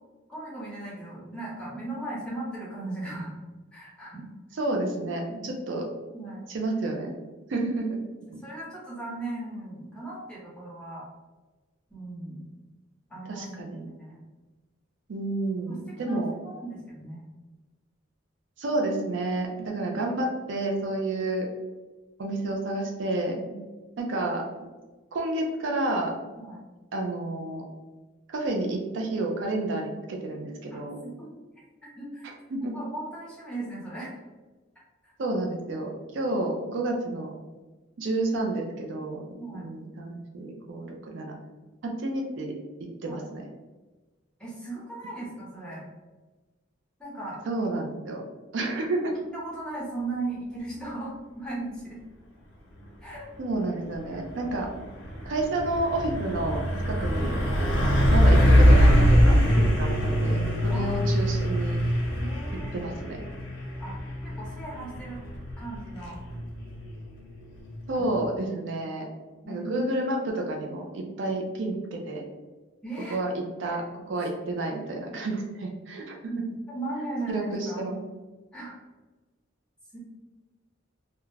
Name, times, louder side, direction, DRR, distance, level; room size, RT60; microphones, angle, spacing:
voice 1, 0.3-3.3 3.7-4.3 5.3-5.5 6.1-6.5 8.4-11.1 11.9-12.5 13.1-14.2 15.7-17.2 23.5-23.6 26.3-26.6 30.7-31.3 32.0-32.3 32.6-34.1 35.0-35.1 39.4-39.6 43.1-43.3 44.4-45.8 47.0-47.4 49.3-52.0 53.0-53.2 54.1-54.2 57.8-58.1 60.7-61.1 62.1-62.9 63.8-64.0 64.2-65.2 65.6-66.2 67.9-68.1 69.4-69.9 72.8-73.2 76.2-77.9 78.5-78.8 79.9-80.0, right 2 dB, 5° left, -7 dB, 0.8 m, -37 dB
voice 2, 4.5-5.8 6.5-7.1 7.5-8.0 13.3-13.9 15.1-16.3 18.6-21.5 22.2-23.4 24.0-24.4 25.1-26.2 26.9-27.6 28.3-31.0 32.5-32.7 35.2-37.3 38.0-39.2 39.5-41.4 42.0-42.5 43.0-43.4 47.5-48.2 48.5-49.1 53.4-54.7 55.2-57.3 58.1-61.8 62.7-63.2 67.9-69.1 69.5-72.2 73.1-76.2 77.3-78.0, right 2 dB, 65° right, 1 dB, 0.4 m, -30 dB
Truck, 54.0-68.3, equal, 70° left, 0.7 m, -23 dB
2.3 x 2.1 x 3.1 m, 1.2 s
head